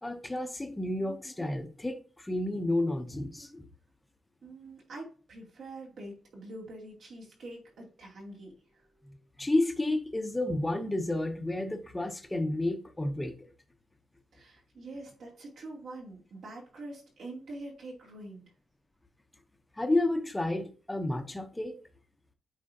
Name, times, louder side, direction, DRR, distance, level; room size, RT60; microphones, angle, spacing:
voice 1, 0.0-3.7 9.1-13.3 19.8-21.7, left 1 dB, 10° left, 0.7 m, -31 dB
voice 2, 4.4-9.2 14.3-18.5, right 2 dB, 70° right, 2.6 m, -45 dB
8.5 x 5.0 x 2.7 m
wide cardioid pair, 160°, 0 cm